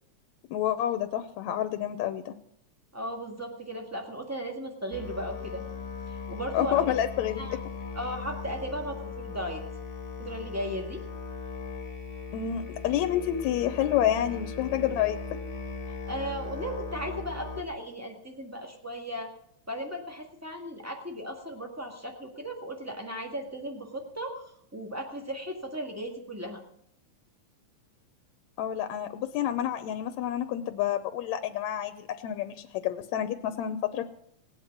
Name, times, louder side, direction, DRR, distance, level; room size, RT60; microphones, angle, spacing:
voice 1, 0.5-2.4 6.5-7.5 12.3-15.2 28.6-34.0, left 11 dB, 80° left, 8 dB, 2.0 m, -29 dB
voice 2, 2.9-5.6 6.1-6.9 7.4-7.6 7.9-9.6 10.2-11.0 16.1-19.3 19.7-24.4 24.7-26.6, equal, 10° right, 2 dB, 0.9 m, -36 dB
Musical instrument, 4.9-17.6, left 4 dB, 35° left, 1.4 m, -38 dB
18.5 x 9.0 x 5.9 m, 0.72 s
omnidirectional pair, 3.3 m